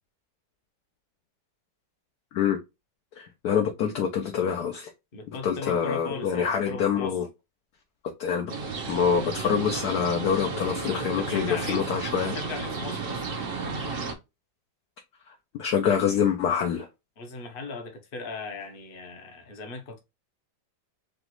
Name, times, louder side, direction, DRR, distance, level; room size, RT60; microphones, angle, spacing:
voice 1, 3.2-4.9 5.4-7.3 8.2-8.5 8.9-12.3 15.6-16.9, left 7 dB, 65° left, 1.1 m, -26 dB
voice 2, 5.1-7.2 11.0-12.0 12.3-13.2 17.2-20.0, left 3 dB, 40° left, 0.8 m, -38 dB
sound 1, 8.5-14.1, right 4 dB, 50° right, 0.7 m, -33 dB
5.1 x 2.4 x 3.0 m
omnidirectional pair, 2.0 m